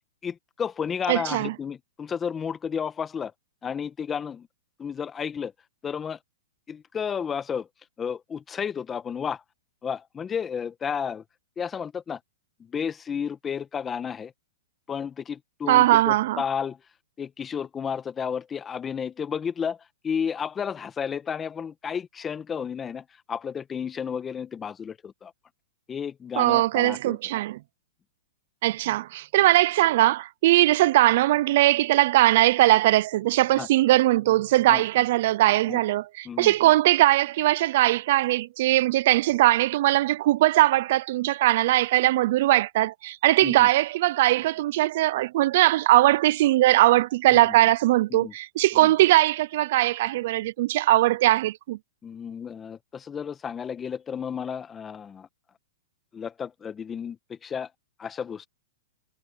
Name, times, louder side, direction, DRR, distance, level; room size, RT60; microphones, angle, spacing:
voice 1, 0.2-3.3 3.6-4.5 4.8-5.5 5.8-6.2 6.7-7.7 8.0-9.4 9.8-11.2 11.6-12.2 12.6-14.3 14.9-16.8 17.2-19.8 20.0-25.3 25.9-27.2 33.6-33.7 34.7-34.8 35.7-35.8 36.2-36.5 43.4-43.7 47.3-47.5 48.1-48.3 48.8-48.9 52.0-55.3 56.1-57.7 58.0-58.5, left 7 dB, 20° left, 1.8 m, -32 dB
voice 2, 1.1-1.5 15.7-16.4 26.4-27.6 28.6-51.8, right 16 dB, 55° right, 0.6 m, -20 dB
hypercardioid pair, 130°, 0 cm